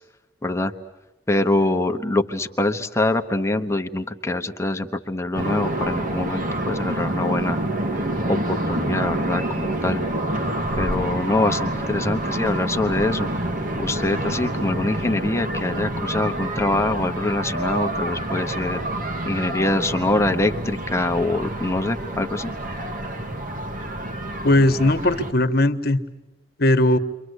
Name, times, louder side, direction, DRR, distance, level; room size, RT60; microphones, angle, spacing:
voice 1, 0.4-0.7 1.3-7.6 8.3-10.0 10.8-13.3 13.8-18.8 19.2-22.5, left 2 dB, 15° left, 5 dB, 1.1 m, -24 dB
sound 1, 5.3-25.3, right 1 dB, 50° right, 2.1 m, -27 dB
voice 2, 24.4-26.0 26.6-27.0, left 1 dB, 60° left, 8 dB, 1.4 m, -18 dB
29.5 x 24.5 x 8.2 m, 1.0 s
head